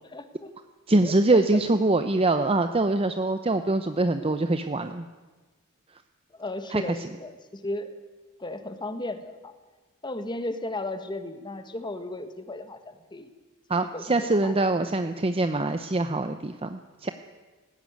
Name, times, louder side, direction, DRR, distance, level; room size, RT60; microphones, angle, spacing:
voice 1, 0.1-0.5 1.0-1.8 6.3-7.9 8.4-9.5 10.0-13.3 13.8-14.5, left 2 dB, 20° left, 8 dB, 1.6 m, -35 dB
voice 2, 0.9-5.0 6.7-6.8 13.7-17.1, right 2 dB, 25° right, 8 dB, 0.7 m, -24 dB
18.5 x 16.0 x 9.4 m, 1.3 s
head